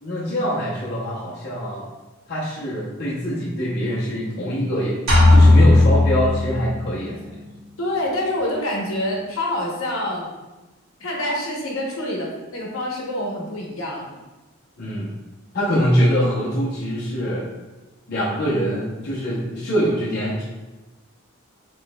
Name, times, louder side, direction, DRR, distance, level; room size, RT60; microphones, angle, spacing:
voice 1, 0.0-1.8 2.3-5.0 5.3-7.2 14.8-15.1 15.5-17.5 18.1-20.4, equal, 50° left, -6 dB, 0.7 m, -23 dB
sound 1, 5.1-6.9, left 2 dB, 75° right, 1.4 m, -14 dB
voice 2, 7.0-7.4 7.8-10.3 11.0-12.3 12.5-14.1, left 1 dB, 75° left, -2 dB, 0.9 m, -26 dB
5.1 x 3.2 x 2.2 m, 1.1 s
head